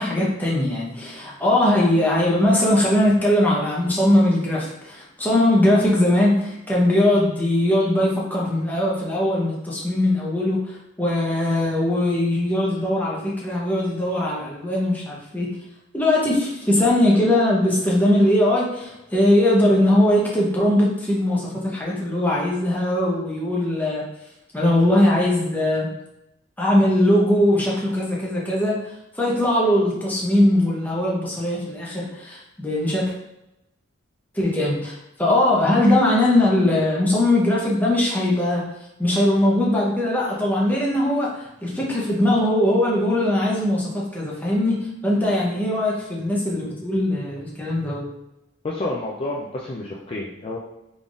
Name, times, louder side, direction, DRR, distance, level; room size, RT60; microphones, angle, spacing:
voice 1, 0.0-15.5 15.9-24.0 24.5-25.9 26.6-28.8 29.2-33.1 34.3-34.9 35.2-38.6 39.0-48.1, left 1 dB, 10° left, -4 dB, 0.8 m, -20 dB
voice 2, 48.6-50.6, left 2 dB, 30° left, -4 dB, 0.4 m, -29 dB
3.8 x 3.5 x 2.4 m, 0.89 s
head